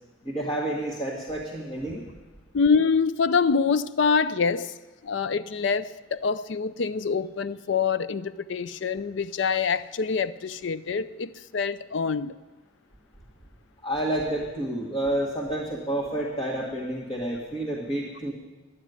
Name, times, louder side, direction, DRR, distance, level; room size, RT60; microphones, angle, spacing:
voice 1, 0.2-2.0 13.8-18.3, right 1 dB, 25° left, -4 dB, 1.7 m, -29 dB
voice 2, 2.5-4.8 5.0-12.4, left 5 dB, 60° left, 16 dB, 0.4 m, -25 dB
11.0 x 9.4 x 9.4 m, 1.2 s
head